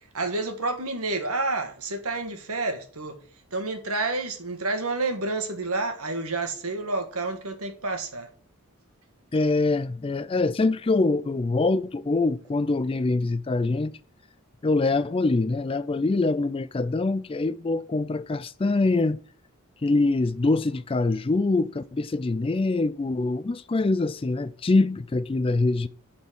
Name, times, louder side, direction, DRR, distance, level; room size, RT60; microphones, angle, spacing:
voice 1, 0.1-3.2 3.5-8.3, right 3 dB, 80° right, 1.7 m, -29 dB
voice 2, 9.3-13.9 14.6-19.2 19.8-25.9, left 3 dB, 25° left, 0.3 m, -24 dB
10.0 x 4.3 x 6.1 m
head